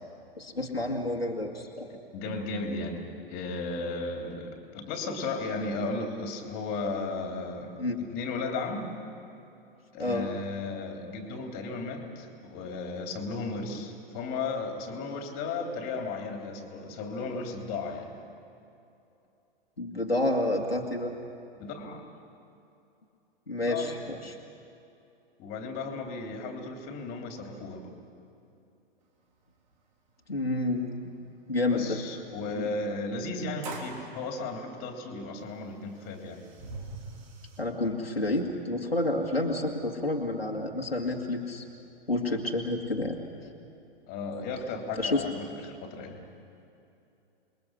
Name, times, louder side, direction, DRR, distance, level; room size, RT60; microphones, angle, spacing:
voice 1, 0.4-1.9 7.8-8.0 10.0-10.3 19.8-21.1 23.5-24.4 30.3-31.0 31.5-32.0 32.6-32.7 37.6-41.6 42.1-43.2 45.0-45.2, left 2 dB, 85° left, 0 dB, 2.1 m, -29 dB
voice 2, 1.9-8.9 9.9-18.1 21.6-22.1 23.7-24.2 25.4-27.9 31.7-36.4 44.1-46.2, left 3 dB, 30° left, 3 dB, 3.3 m, -35 dB
sound 1, 29.4-29.5 29.7-29.8 30.6-30.7 32.7-32.8 33.6-34.0 35.3-35.4 35.8-37.6, right 3 dB, 50° right, 3.4 m, -42 dB
27.5 x 22.0 x 6.4 m, 2.7 s
figure-of-eight pair, 105°, 29 cm